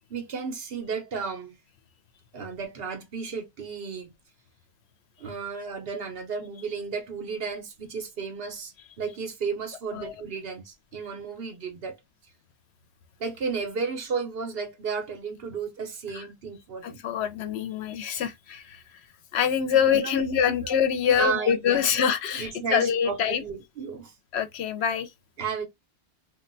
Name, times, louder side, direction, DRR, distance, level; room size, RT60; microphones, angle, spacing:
voice 1, 0.1-1.6 2.3-4.1 5.2-12.0 13.2-17.0 19.7-20.7 21.0-24.1 25.4-25.7, right 5 dB, 65° right, 1.0 m, -33 dB
voice 2, 16.8-18.8 19.3-23.4 24.3-25.1, left 8 dB, 85° left, 0.9 m, -25 dB
2.5 x 2.2 x 3.8 m
omnidirectional pair, 1.1 m